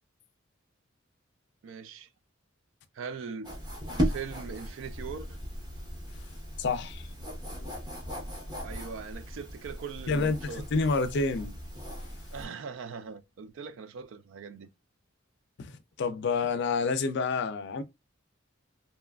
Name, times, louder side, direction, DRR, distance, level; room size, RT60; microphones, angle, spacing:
voice 1, 1.6-2.1 2.9-3.6 3.9-5.4 8.6-10.9 12.3-14.7, right 6 dB, 70° right, 0.4 m, -41 dB
sound 1, 3.4-12.5, equal, 20° right, 0.8 m, -37 dB
voice 2, 6.6-7.0 7.6-7.7 10.1-10.4 10.7-11.5 16.0-17.8, left 4 dB, 60° left, 0.4 m, -28 dB
2.9 x 2.3 x 2.2 m
head